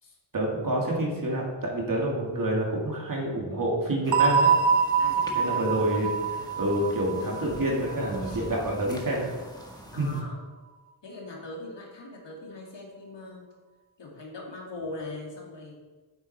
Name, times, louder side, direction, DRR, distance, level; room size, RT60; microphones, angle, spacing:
voice 1, 0.3-4.5 5.3-9.3 10.0-10.2, right 1 dB, 45° right, -2 dB, 2.6 m, -28 dB
sound 1, 4.0-10.2, equal, 10° left, 1.4 m, -45 dB
sound 2, 4.1-8.7, right 6 dB, 65° right, 0.6 m, -25 dB
voice 2, 5.0-5.7 8.2-8.4 9.9-10.4 11.0-13.5 14.0-15.8, left 2 dB, 60° left, -2 dB, 2.5 m, -41 dB
8.6 x 8.0 x 4.4 m, 1.3 s
wide cardioid pair, 95°, 47 cm